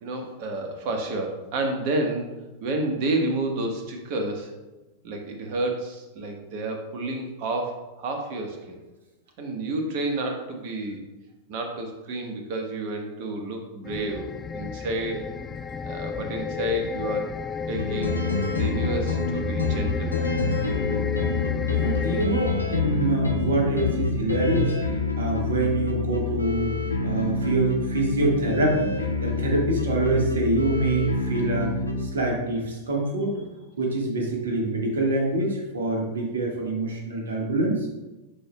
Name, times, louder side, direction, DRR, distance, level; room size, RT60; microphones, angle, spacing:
voice 1, 0.0-2.3 2.6-4.5 5.0-8.8 9.4-11.0 11.5-15.3 15.8-17.3 17.6-18.2 18.5-20.1, right 2 dB, 45° right, 3 dB, 1.2 m, -30 dB
sound 1, 13.8-22.3, left 5 dB, 15° left, 0.3 m, -32 dB
sound 2, 17.7-32.1, left 3 dB, 85° left, 0.8 m, -27 dB
voice 2, 21.8-24.7 25.2-28.9 29.2-31.7 32.0-33.4 33.8-37.7, right 2 dB, 65° right, 0 dB, 1.5 m, -25 dB
11.5 x 4.5 x 2.2 m, 1.1 s
figure-of-eight pair, 90°, 0 cm